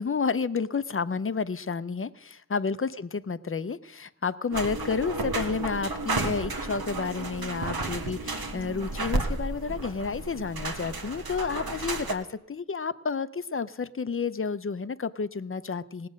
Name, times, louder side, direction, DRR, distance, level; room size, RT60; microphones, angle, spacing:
voice 1, 0.0-16.1, left 5 dB, 35° left, 14 dB, 0.6 m, -31 dB
sound 1, 4.5-12.1, right 2 dB, 80° right, 1.3 m, -32 dB
18.0 x 7.7 x 6.4 m, 0.89 s
wide cardioid pair, 50°, 36 cm